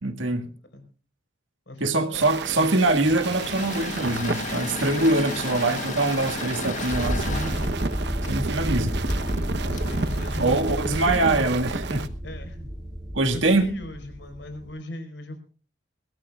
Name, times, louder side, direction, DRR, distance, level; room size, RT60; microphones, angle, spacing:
voice 1, 0.0-0.5 1.8-7.6 8.2-9.0 10.4-12.1 13.1-13.7, right 2 dB, 90° right, 1.8 m, -23 dB
voice 2, 1.7-2.7 9.6-11.7 12.2-12.7 13.3-15.4, left 1 dB, 70° left, 4.4 m, -38 dB
sound 1, 2.1-12.1, right 3 dB, 60° right, 0.9 m, -33 dB
Engine / Mechanisms, 2.9-11.3, left 3 dB, 40° left, 1.7 m, -35 dB
sound 2, 6.9-14.7, equal, 5° left, 5.8 m, -31 dB
22.5 x 17.5 x 2.4 m
head